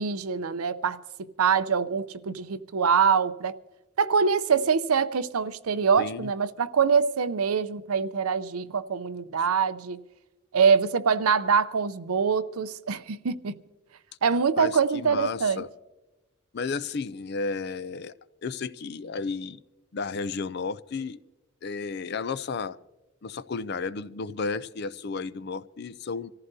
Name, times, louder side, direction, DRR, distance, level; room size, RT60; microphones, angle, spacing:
voice 1, 0.0-3.6 4.0-10.0 10.5-13.6 14.2-15.6, right 6 dB, 85° right, 0.6 m, -24 dB
voice 2, 6.0-6.3 14.6-15.7 16.5-18.1 18.4-19.6 19.9-21.2 21.6-22.8 23.2-26.3, left 4 dB, 50° left, 0.4 m, -33 dB
26.5 x 14.5 x 2.7 m
head